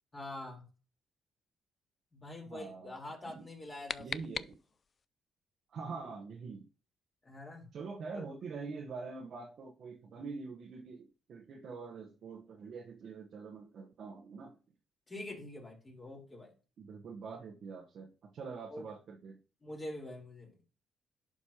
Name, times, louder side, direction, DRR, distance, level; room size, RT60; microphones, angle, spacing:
voice 1, 0.1-0.6 2.1-4.3 7.2-7.7 8.1-8.2 15.1-16.5 18.7-18.9 19.6-20.6, left 1 dB, 25° left, 3.7 m, -45 dB
voice 2, 2.5-2.9 3.3-3.5 4.0-4.6 5.7-6.7 7.7-14.6 16.8-19.4, right 4 dB, 65° right, 1.0 m, -45 dB
sound 1, 3.4-5.1, left 5 dB, 40° left, 0.3 m, -42 dB
11.5 x 5.2 x 2.9 m
cardioid pair, 90°, 0 cm